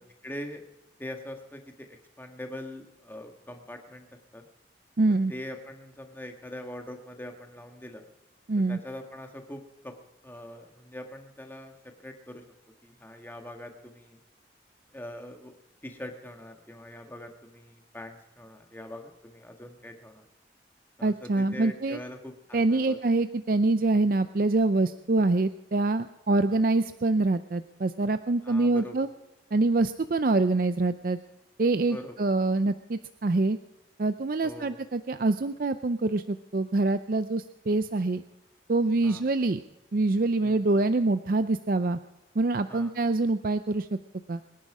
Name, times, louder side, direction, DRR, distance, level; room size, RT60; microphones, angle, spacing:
voice 1, 0.2-0.6 1.0-4.1 4.3-4.5 5.3-8.0 8.7-9.9 10.2-12.4 12.8-14.2 14.9-15.5 15.8-20.2 21.0-23.0 26.4-26.6 28.4-29.0 31.9-32.1 34.4-34.8 39.0-39.2 40.4-40.6 42.7-42.9, left 1 dB, 10° left, 4 dB, 1.6 m, -42 dB
voice 2, 5.0-5.3 8.5-8.8 21.0-22.0 22.5-29.1 29.5-31.2 31.6-33.6 34.0-38.2 38.7-39.6 39.9-42.0 42.4-44.0 44.3-44.4, right 2 dB, 50° right, 11 dB, 0.5 m, -25 dB
24.0 x 10.5 x 4.9 m, 1.0 s
head